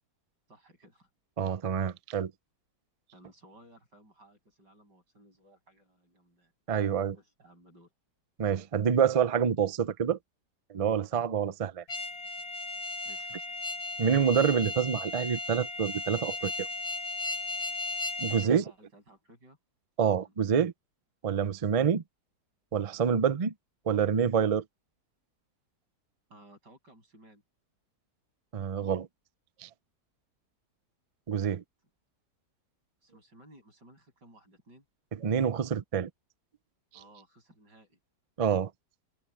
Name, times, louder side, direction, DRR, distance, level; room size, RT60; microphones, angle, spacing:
voice 1, 0.5-1.1 3.1-6.5 7.1-7.9 13.0-13.3 18.3-19.6 20.2-20.3 26.3-27.4 31.4-31.6 33.0-34.8 36.9-38.0, right 1 dB, 85° right, 8.4 m, -57 dB
voice 2, 1.4-2.3 6.7-7.1 8.4-10.2 10.7-11.8 14.0-16.7 18.2-18.6 20.0-20.7 21.2-22.0 22.7-23.5 23.9-24.6 28.5-29.1 29.6-29.7 31.3-31.6 35.2-36.1 38.4-38.7, right 7 dB, 70° right, 0.3 m, -27 dB
sound 1, 11.9-18.5, left 3 dB, 65° left, 2.1 m, -36 dB
omnidirectional pair, 1.8 m